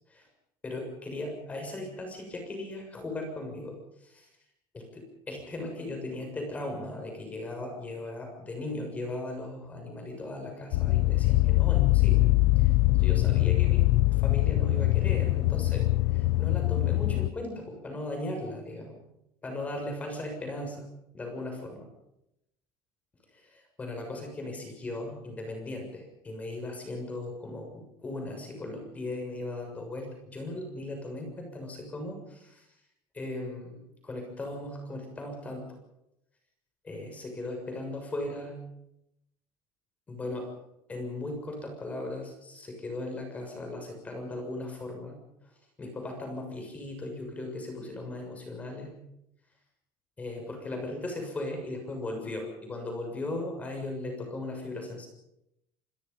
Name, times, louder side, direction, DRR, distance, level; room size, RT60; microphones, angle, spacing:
voice 1, 0.6-3.8 4.0-4.3 5.3-12.3 12.6-12.7 13.0-15.9 16.1-19.0 19.4-20.8 21.1-21.9 23.3-32.6 33.1-35.6 36.8-38.6 40.1-40.5 40.9-45.2 45.8-48.9 50.2-55.1, left 2 dB, 15° left, 3 dB, 6.9 m, -37 dB
sound 1, 10.7-17.3, left 18 dB, 80° left, 0.9 m, -23 dB
26.5 x 22.5 x 5.6 m, 0.83 s
cardioid pair, 165°, 8 cm